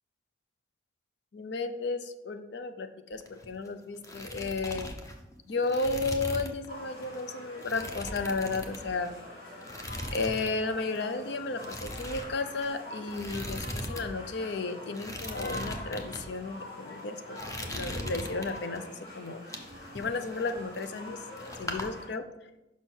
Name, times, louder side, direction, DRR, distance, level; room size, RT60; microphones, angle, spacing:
voice 1, 1.3-4.9 5.5-9.1 10.1-18.8 19.1-19.4 19.9-21.2 21.6-22.3, left 3 dB, 65° left, 8 dB, 0.5 m, -33 dB
sound 1, 3.1-3.7 3.9-6.7 7.0-7.2 7.6-9.2 9.6-10.6 10.8-11.0 11.6-14.1 14.3-14.4 14.9-16.2 16.8-17.0 17.4-18.8 19.3-21.1 21.4-21.9, left 1 dB, 20° left, 0.7 m, -39 dB
sound 2, 6.7-22.1, left 1 dB, 85° left, 2.8 m, -45 dB
6.1 x 5.6 x 4.5 m, 0.97 s
head